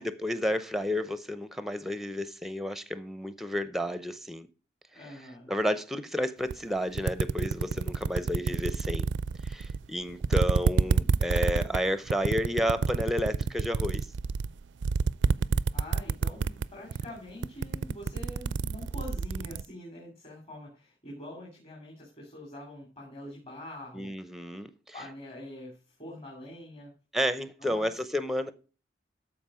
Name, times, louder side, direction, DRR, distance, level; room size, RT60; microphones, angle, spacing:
voice 1, 0.0-4.5 5.5-9.1 9.4-14.1 23.9-24.7 27.1-28.5, equal, ahead, 0.6 m, -31 dB
voice 2, 4.9-5.5 15.7-24.3 24.9-26.9 27.6-27.9, left 1 dB, 35° left, 2.8 m, -45 dB
sound 1, 6.5-6.6 6.9-9.9 10.2-16.7 16.9-17.2 17.4-19.6, right 5 dB, 85° right, 0.4 m, -27 dB
13.0 x 4.9 x 4.8 m
head